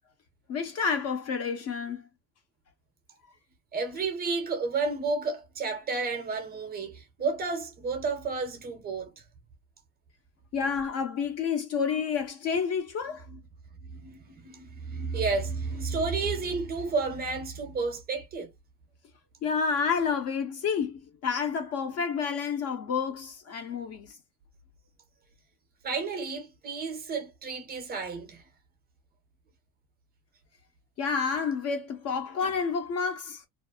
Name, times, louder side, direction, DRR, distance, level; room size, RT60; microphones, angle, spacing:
voice 1, 0.5-2.1 10.5-13.3 19.4-24.2 31.0-33.4, left 6 dB, 40° left, 0.5 m, -29 dB
voice 2, 3.7-9.2 13.3-13.4 13.9-18.5 25.8-28.4, right 4 dB, 25° right, 0.5 m, -31 dB
2.4 x 2.0 x 2.6 m
cardioid pair, 150°, 42 cm